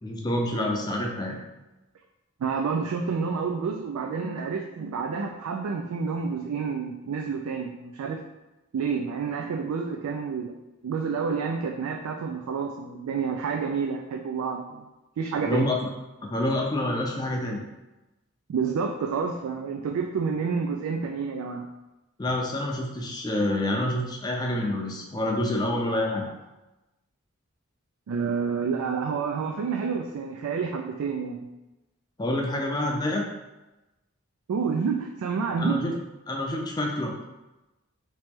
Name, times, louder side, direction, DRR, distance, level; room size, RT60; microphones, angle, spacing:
voice 1, 0.0-1.4 15.4-15.8 16.2-17.6 22.2-26.3 32.2-33.2 35.6-35.9 36.3-37.2, left 1 dB, 20° left, 0 dB, 0.4 m, -27 dB
voice 2, 2.4-8.2 8.7-10.5 10.8-14.9 15.2-15.7 18.5-21.6 28.1-31.5 34.5-35.8, right 5 dB, 90° right, 2 dB, 0.3 m, -29 dB
3.0 x 2.9 x 3.5 m, 1.0 s
head